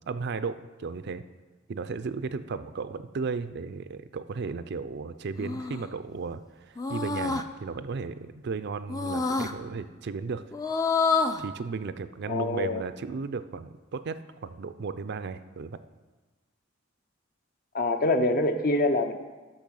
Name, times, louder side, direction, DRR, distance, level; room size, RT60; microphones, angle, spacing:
voice 1, 0.1-1.2 1.7-10.4 11.4-15.8, right 4 dB, 55° right, 12 dB, 0.4 m, -35 dB
sound 1, 5.4-5.9 6.8-7.4 8.9-9.5 10.5-11.4, left 4 dB, 20° left, 0.4 m, -27 dB
voice 2, 12.3-12.8 17.7-19.2, left 2 dB, 50° left, 7 dB, 0.8 m, -25 dB
10.5 x 6.0 x 6.3 m, 1.3 s
head